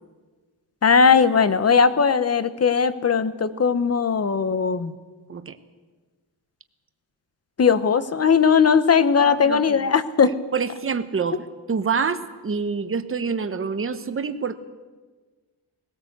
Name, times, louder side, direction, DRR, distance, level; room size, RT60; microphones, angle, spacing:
voice 1, 0.8-4.9 7.6-10.3, left 6 dB, 30° left, 13 dB, 1.0 m, -18 dB
voice 2, 9.2-9.8 10.2-14.5, right 5 dB, 25° right, 10 dB, 1.1 m, -27 dB
19.5 x 18.0 x 8.1 m, 1.3 s
wide cardioid pair, 140°, 49 cm